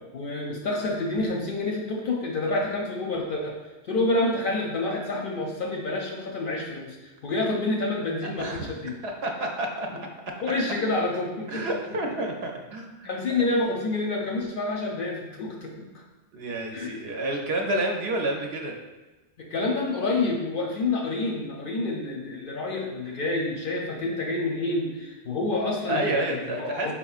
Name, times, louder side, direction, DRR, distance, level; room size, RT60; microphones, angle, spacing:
voice 1, 0.1-3.5 3.9-8.9 10.4-12.0 13.0-15.9 16.7-17.0 19.4-26.9, left 2 dB, 60° left, -1 dB, 0.6 m, -28 dB
voice 2, 8.2-8.7 9.0-9.9 11.5-13.2 16.3-18.7 25.9-26.9, right 1 dB, 70° right, 1 dB, 0.8 m, -29 dB
4.4 x 3.5 x 2.4 m, 1.1 s
omnidirectional pair, 1.2 m